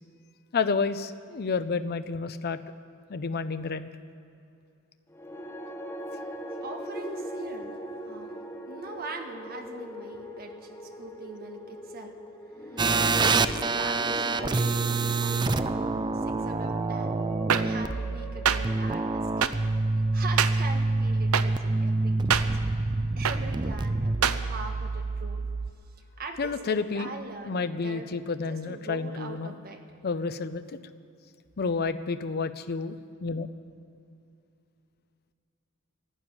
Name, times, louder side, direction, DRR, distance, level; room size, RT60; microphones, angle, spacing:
voice 1, 0.5-2.6 3.1-3.9 26.4-27.1 27.5-29.5 30.0-30.8 31.6-33.5, left 4 dB, 50° left, 11 dB, 0.6 m, -30 dB
sound 1, 5.1-21.4, equal, 10° left, 1.1 m, -41 dB
voice 2, 6.6-7.8 8.0-8.3 8.7-12.2 12.6-17.2 17.5-19.6 19.9-22.4 23.2-25.5 26.2-29.8, right 3 dB, 45° right, 4 dB, 1.4 m, -42 dB
sound 2, 12.8-25.7, right 3 dB, 20° right, 0.4 m, -27 dB
sound 3, 17.5-17.6 18.5-18.6 19.4-19.5 20.4-20.5 21.3-21.4 22.3-22.4 23.2-23.4 24.2-24.4, right 8 dB, 75° right, 0.7 m, -22 dB
12.5 x 12.0 x 9.7 m, 2.6 s
head